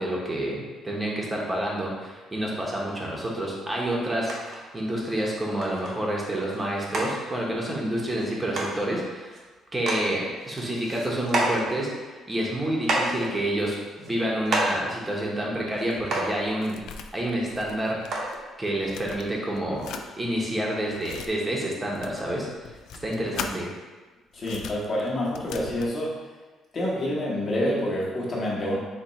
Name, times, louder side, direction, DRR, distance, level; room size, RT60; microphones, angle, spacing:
voice 1, 0.0-9.4 9.7-16.8 17.1-18.2 18.6-19.9 20.2-22.5 23.0-23.7, right 1 dB, 15° right, -3 dB, 0.8 m, -28 dB
sound 1, 4.3-4.6 5.2-5.3 5.6-5.9 6.5-6.6 6.9-7.1 8.2-8.3 8.5-8.7 9.3-9.4 9.8-10.0 10.4-11.7 12.3-12.4 12.8-13.3 14.0-14.1 14.5-14.8 15.7-15.8 16.1-16.4 17.4-17.5 18.1-18.4 19.2-19.3, right 2 dB, 50° right, 0.8 m, -28 dB
sound 2, 15.6-18.4 18.7-20.1 20.7-21.3 21.9-23.6 24.3-25.9, left 6 dB, 70° left, 0.3 m, -40 dB
voice 2, 24.3-26.2 26.7-28.8, left 1 dB, 30° left, -5 dB, 1.1 m, -27 dB
4.3 x 2.9 x 4.0 m, 1.3 s
cardioid pair, 160°, 0 cm